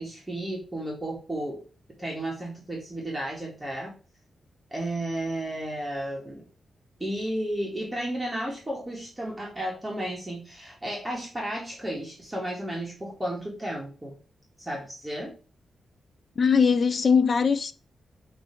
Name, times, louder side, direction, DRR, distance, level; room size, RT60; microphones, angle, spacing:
voice 1, 0.0-1.6 2.0-3.9 4.7-6.4 7.0-14.2 14.6-15.3, right 1 dB, 15° right, 2.1 m, -33 dB
voice 2, 16.4-17.7, left 6 dB, 45° left, 0.6 m, -21 dB
7.8 x 3.3 x 4.8 m
wide cardioid pair, 125°, 0 cm